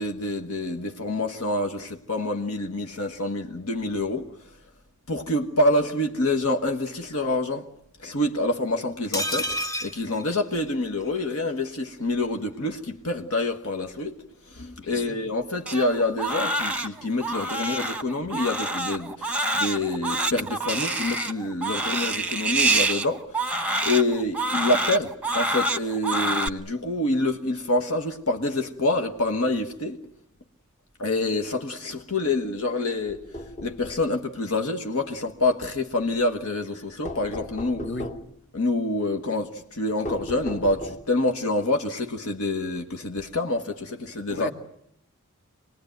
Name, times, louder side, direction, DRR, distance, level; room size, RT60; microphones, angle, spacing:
voice 1, 0.0-4.2 5.1-7.6 8.0-9.5 9.8-14.2 14.5-23.5 23.8-30.0 31.0-33.2 33.6-37.9 38.5-44.5, left 2 dB, 85° left, 1.5 m, -27 dB
sound 1, 9.1-11.1 11.4-11.5 11.8-11.9, equal, 15° left, 1.3 m, -30 dB
voice 2, 14.8-15.2 37.8-38.1 44.3-44.5, left 3 dB, 55° left, 2.0 m, -34 dB
Crying sobbing, 15.7-26.5, right 2 dB, 5° right, 0.9 m, -27 dB
sound 2, 33.1-34.1 37.0-38.4 40.0-41.2, left 1 dB, 35° left, 1.3 m, -36 dB
26.5 x 20.0 x 9.3 m
head